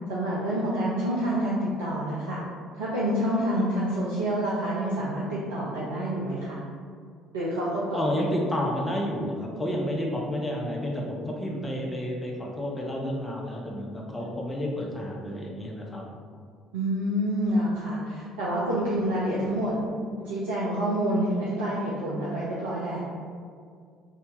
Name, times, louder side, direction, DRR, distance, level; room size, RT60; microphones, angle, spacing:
voice 1, 0.1-2.4 2.7-6.6 7.3-8.0 16.7-19.8 20.2-23.0, right 1 dB, 70° right, -7 dB, 0.5 m, -27 dB
voice 2, 7.9-16.0, equal, 15° left, -1 dB, 0.7 m, -30 dB
2.8 x 2.7 x 3.4 m, 2.1 s
figure-of-eight pair, 55°, 0 cm